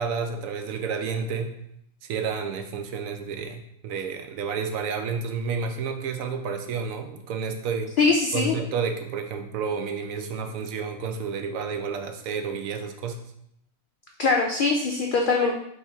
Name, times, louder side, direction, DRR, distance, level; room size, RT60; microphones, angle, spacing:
voice 1, 0.0-1.6 2.0-8.0 8.3-13.2, right 5 dB, 80° right, 5 dB, 1.0 m, -30 dB
voice 2, 8.0-8.5 14.2-15.5, left 4 dB, 75° left, 1 dB, 0.4 m, -22 dB
4.4 x 3.4 x 3.4 m, 0.76 s
omnidirectional pair, 1.4 m